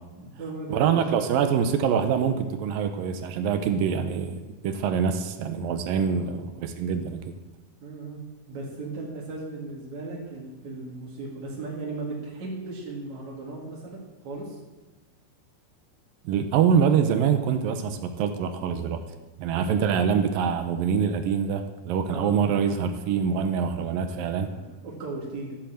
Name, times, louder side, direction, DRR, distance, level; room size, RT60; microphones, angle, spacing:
voice 1, 0.2-1.4 6.0-6.3 7.8-8.2 8.5-14.6 19.5-19.7 22.1-22.6 24.5-25.6, right 2 dB, 50° right, -4 dB, 3.3 m, -37 dB
voice 2, 0.7-7.3 16.2-19.0 19.4-24.5, right 7 dB, 75° right, 8 dB, 2.2 m, -25 dB
13.0 x 8.3 x 7.6 m, 1.1 s
omnidirectional pair, 4.8 m